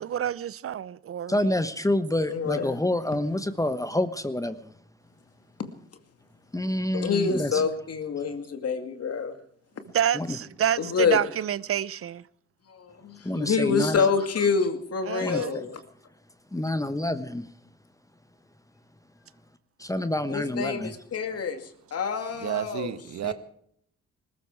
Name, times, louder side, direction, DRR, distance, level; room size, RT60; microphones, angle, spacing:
voice 1, 0.0-1.5 9.9-12.2 15.1-15.6, right 10 dB, 50° right, 0.7 m, -28 dB
voice 2, 1.3-4.7 6.5-7.6 10.1-10.4 13.2-14.0 15.2-15.6 16.5-17.4 19.8-20.9, left 1 dB, 10° left, 1.1 m, -27 dB
voice 3, 2.3-2.8 6.9-9.4 10.8-11.2 12.7-15.8 20.3-22.9 23.2-23.3, left 5 dB, 55° left, 2.4 m, -27 dB
voice 4, 22.4-23.3, right 11 dB, 65° right, 1.4 m, -31 dB
20.0 x 14.0 x 4.8 m
supercardioid pair, 60°, 29 cm